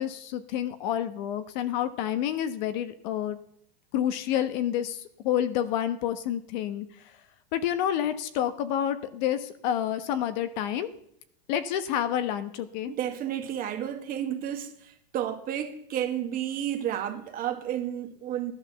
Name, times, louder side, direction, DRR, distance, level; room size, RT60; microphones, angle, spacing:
voice 1, 0.0-3.4 3.9-6.8 7.5-10.9 11.5-12.9, left 10 dB, 45° left, 1.3 m, -29 dB
voice 2, 12.9-18.5, right 10 dB, 30° right, 1.8 m, -32 dB
15.5 x 12.0 x 7.0 m
supercardioid pair, 150°, 31 cm